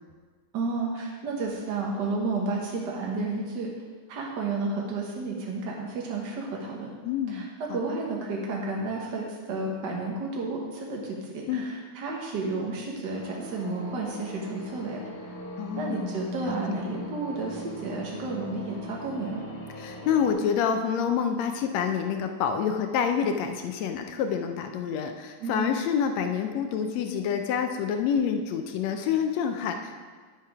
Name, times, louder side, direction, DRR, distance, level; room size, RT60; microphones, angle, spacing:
voice 1, 0.5-3.7 4.1-6.9 7.3-7.5 7.7-15.0 15.7-19.5 25.4-25.8, right 3 dB, 55° right, -2 dB, 1.2 m, -31 dB
voice 2, 7.0-8.0 11.5-11.7 15.6-16.1 16.4-16.6 19.8-29.9, left 7 dB, 75° left, 6 dB, 1.7 m, -27 dB
sound 1, 13.1-20.3, right 1 dB, 35° left, 2.3 m, -40 dB
10.5 x 7.4 x 4.9 m, 1.5 s
omnidirectional pair, 3.5 m